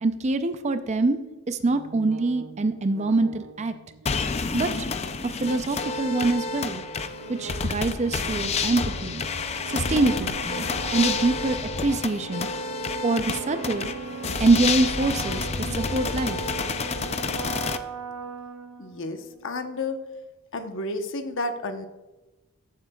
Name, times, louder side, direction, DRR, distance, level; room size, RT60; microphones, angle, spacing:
voice 1, 0.0-1.2 1.5-3.7 4.5-4.9 5.2-6.8 7.3-9.2 9.7-10.7 10.9-12.5 13.0-13.9 14.4-16.5, right 3 dB, 30° right, 10 dB, 0.5 m, -25 dB
sound 1, 1.7-19.3, right 5 dB, 85° right, 0.7 m, -40 dB
sound 2, 4.1-17.8, left 4 dB, 30° left, 0.4 m, -29 dB
voice 2, 18.8-20.0 20.5-21.9, left 2 dB, 60° left, 7 dB, 0.9 m, -31 dB
14.0 x 7.6 x 2.3 m, 1.1 s
head